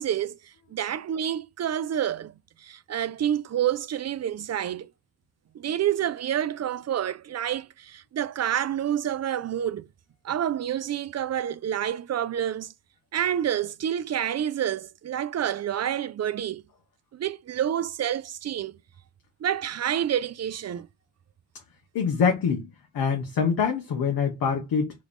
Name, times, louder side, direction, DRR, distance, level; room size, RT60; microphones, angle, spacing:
voice 1, 0.0-4.9 5.5-9.9 10.2-12.7 13.1-16.6 17.1-18.8 19.4-20.9, right 10 dB, 50° right, 0.4 m, -28 dB
voice 2, 21.9-22.6 22.9-24.9, left 6 dB, 85° left, 0.9 m, -24 dB
3.0 x 2.4 x 3.5 m
cardioid pair, 60°, 35 cm